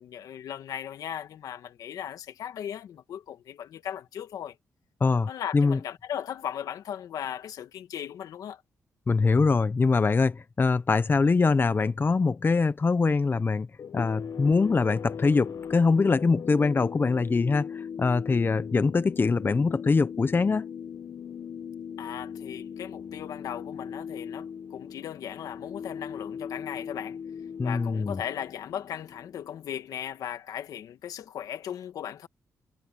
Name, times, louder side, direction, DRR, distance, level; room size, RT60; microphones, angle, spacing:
voice 1, 0.0-4.6 5.3-8.6 22.0-27.2 27.6-32.3, left 9 dB, 85° left, 1.7 m, -37 dB
voice 2, 5.0-5.8 9.1-13.7 13.9-20.6 27.6-28.2, left 4 dB, 35° left, 0.9 m, -23 dB
sound 1, 13.8-30.1, left 7 dB, 65° left, 1.0 m, -39 dB
cardioid pair, 65°, 6 cm